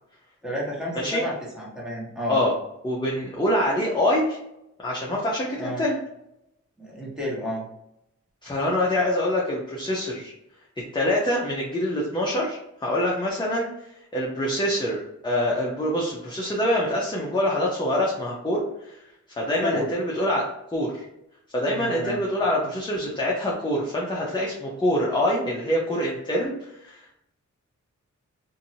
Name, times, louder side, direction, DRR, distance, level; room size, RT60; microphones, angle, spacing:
voice 1, 0.4-2.4 5.6-5.8 6.8-7.6 19.6-19.9 21.7-22.2, equal, ahead, -6 dB, 1.4 m, -30 dB
voice 2, 2.8-4.4 4.8-6.0 8.4-10.3 10.9-19.0 19.3-21.0 21.5-27.1, left 1 dB, 15° left, -4 dB, 0.7 m, -25 dB
2.8 x 2.7 x 2.7 m, 0.82 s
wide cardioid pair, 80°, 31 cm